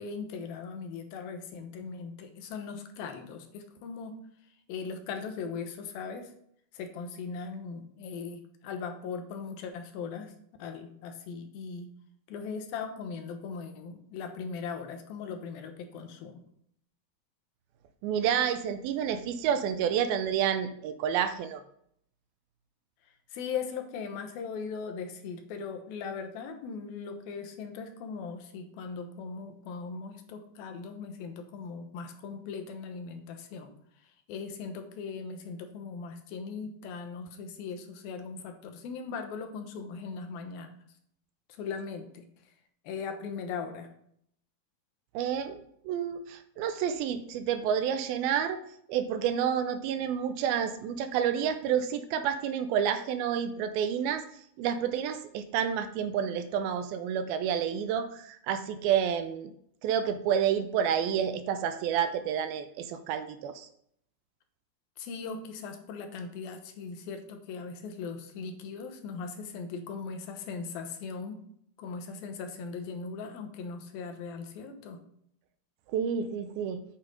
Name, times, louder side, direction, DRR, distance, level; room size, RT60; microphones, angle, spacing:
voice 1, 0.0-4.1 4.7-6.3 6.7-10.3 10.6-11.9 12.3-16.4 23.3-33.7 34.0-40.7 41.5-42.2 42.8-43.9 65.0-71.4 71.8-75.0, left 5 dB, 75° left, 6 dB, 2.7 m, -39 dB
voice 2, 18.0-21.6 45.1-48.6 48.9-54.2 54.6-59.5 59.8-63.7 75.9-76.8, right 8 dB, 80° right, 10 dB, 2.4 m, -29 dB
8.9 x 5.7 x 5.0 m, 0.68 s
omnidirectional pair, 4.5 m